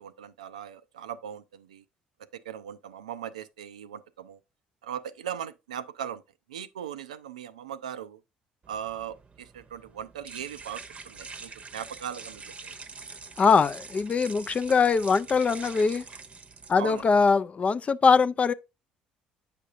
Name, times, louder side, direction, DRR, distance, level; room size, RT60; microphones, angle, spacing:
voice 1, 0.0-1.8 2.3-4.4 4.8-6.2 6.5-8.2 8.7-12.8 16.8-17.1, right 9 dB, 90° right, 0.4 m, -39 dB
sound 1, 8.6-17.2, right 4 dB, 35° right, 0.8 m, -45 dB
voice 2, 13.4-16.0 16.7-18.5, left 5 dB, 35° left, 0.4 m, -22 dB
8.2 x 5.0 x 2.5 m
hypercardioid pair, 55°, 4 cm